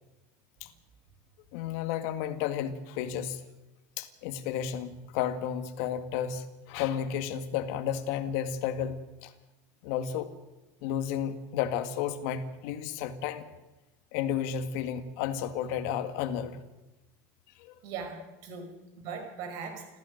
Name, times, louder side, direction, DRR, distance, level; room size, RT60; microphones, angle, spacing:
voice 1, 1.5-3.4 4.0-9.3 9.8-10.3 10.8-13.4 14.1-16.6 17.6-17.7, left 9 dB, 65° left, 9 dB, 1.9 m, -32 dB
voice 2, 17.8-19.9, right 5 dB, 55° right, 6 dB, 5.3 m, -40 dB
29.0 x 14.5 x 6.5 m, 1.1 s
cardioid pair, 160°, 8 cm